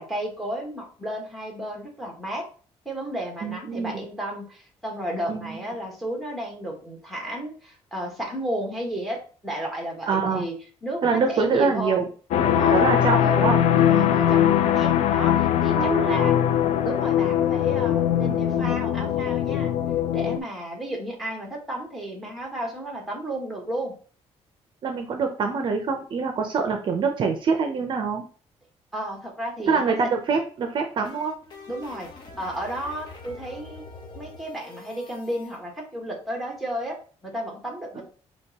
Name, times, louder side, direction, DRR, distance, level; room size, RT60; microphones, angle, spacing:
voice 1, 0.0-2.5 2.8-10.5 10.8-12.0 12.4-13.4 13.8-16.4 16.8-19.7 20.1-23.9 28.9-29.9 31.7-32.1 32.4-33.8 34.1-37.0 37.2-38.0, right 1 dB, ahead, 0 dB, 1.3 m, -33 dB
voice 2, 3.4-3.9 5.3-5.6 10.1-10.5 11.0-12.1 12.7-13.6 15.8-16.4 18.3-18.5 24.8-28.2 29.7-31.3 38.0-38.1, right 5 dB, 45° right, 5 dB, 0.5 m, -25 dB
sound 1, 12.3-20.4, left 10 dB, 75° left, 0.4 m, -21 dB
sound 2, 30.6-35.6, left 3 dB, 40° left, 0.9 m, -44 dB
6.2 x 3.0 x 2.8 m, 0.39 s
cardioid pair, 160°, 11 cm